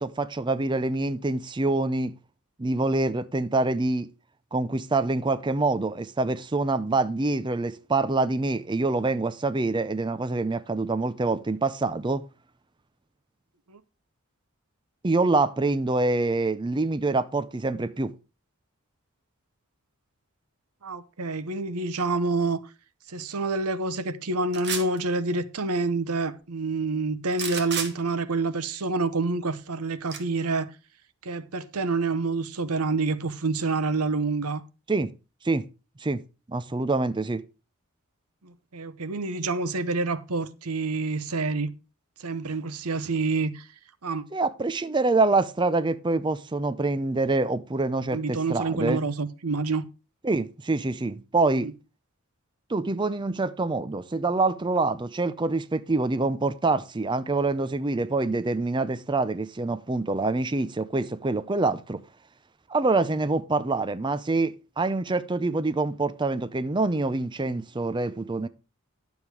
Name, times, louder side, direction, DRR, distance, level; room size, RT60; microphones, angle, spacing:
voice 1, 0.0-2.1 2.6-4.1 4.5-12.2 15.0-18.1 34.9-35.1 35.4-35.6 36.0-36.2 36.5-37.4 44.3-49.0 50.2-51.7 52.7-62.0 62.7-68.5, right 3 dB, 20° right, 0.5 m, -26 dB
voice 2, 20.8-22.6 23.1-30.7 31.2-34.6 38.4-41.7 42.2-43.7 44.0-44.2 48.1-49.8 51.6-51.7, right 3 dB, 85° right, 0.9 m, -27 dB
sound 1, 24.5-25.0 27.3-27.9 30.1-30.2, right 6 dB, 50° right, 1.9 m, -30 dB
11.0 x 7.2 x 4.7 m
head